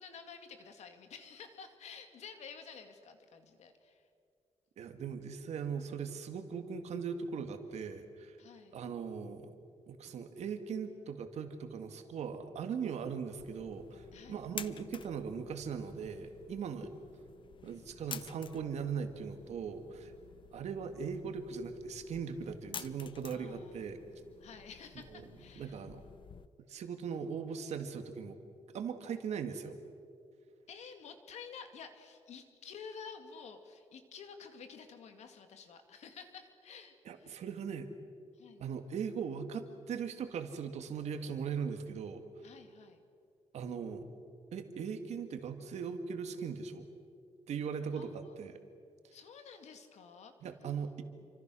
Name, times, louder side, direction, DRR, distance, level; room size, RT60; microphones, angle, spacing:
voice 1, 0.0-4.1 8.4-8.8 14.1-14.5 23.3-23.9 24.4-25.8 30.7-37.4 38.3-38.7 42.4-43.0 48.0-48.3 49.1-50.3, left 6 dB, 80° left, 7 dB, 2.3 m, -51 dB
voice 2, 4.8-8.4 8.7-9.5 9.9-16.9 17.6-20.1 20.5-24.0 25.6-26.0 26.7-28.4 28.7-29.7 37.1-37.9 38.6-42.2 43.5-44.1 44.5-46.9 47.5-48.6 50.4-51.0, right 6 dB, 75° right, 7 dB, 2.2 m, -39 dB
sound 1, 13.4-26.5, left 7 dB, 45° left, 0.7 m, -51 dB
28.0 x 25.5 x 6.3 m, 2.3 s
wide cardioid pair, 155°, 11 cm